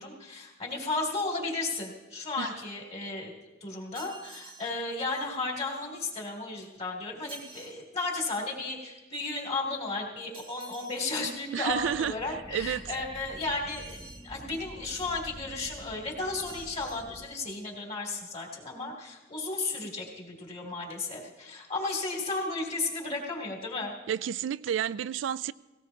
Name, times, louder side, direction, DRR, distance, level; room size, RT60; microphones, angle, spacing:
voice 1, 0.0-3.3 3.6-23.9, left 3 dB, 35° left, -1 dB, 2.7 m, -34 dB
sound 1, 3.9-4.8 7.3-7.8 10.3-11.0 13.7-14.3 16.3-17.1, right 4 dB, 30° right, 1.1 m, -49 dB
voice 2, 11.5-12.8 24.1-25.5, right 9 dB, 75° right, 17 dB, 0.3 m, -31 dB
sound 2, 11.7-17.3, equal, 5° left, 1.1 m, -48 dB
18.0 x 17.5 x 2.8 m, 1.1 s
head